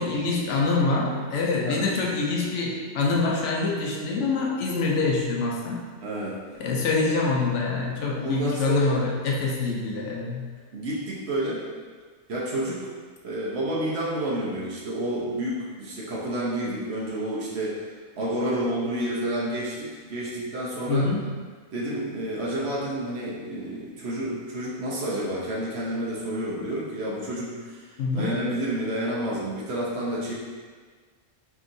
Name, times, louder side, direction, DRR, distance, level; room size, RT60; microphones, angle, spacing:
voice 1, 0.0-5.9 6.6-10.4 20.9-21.3 28.0-28.4, left 3 dB, 70° left, -2 dB, 0.9 m, -25 dB
voice 2, 6.0-6.4 8.2-9.0 10.7-11.7 12.3-12.9 13.2-17.8 18.2-21.1 21.7-30.3, right 1 dB, 60° right, -5 dB, 1.0 m, -29 dB
4.4 x 2.9 x 2.6 m, 1.5 s
omnidirectional pair, 1.3 m